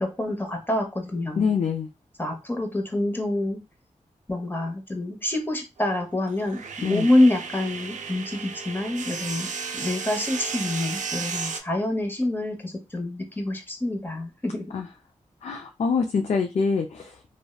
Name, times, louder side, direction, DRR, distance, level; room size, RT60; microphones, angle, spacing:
voice 1, 0.0-1.5 2.2-3.6 4.3-14.7, left 1 dB, 15° left, 4 dB, 0.8 m, -26 dB
voice 2, 1.4-1.9 6.8-7.1 14.7-14.9 15.4-17.3, left 5 dB, 55° left, 4 dB, 0.4 m, -25 dB
sound 1, 5.8-11.6, right 5 dB, 70° right, 0.4 m, -34 dB
2.7 x 2.1 x 2.2 m, 0.26 s
cardioid pair, 55°, 13 cm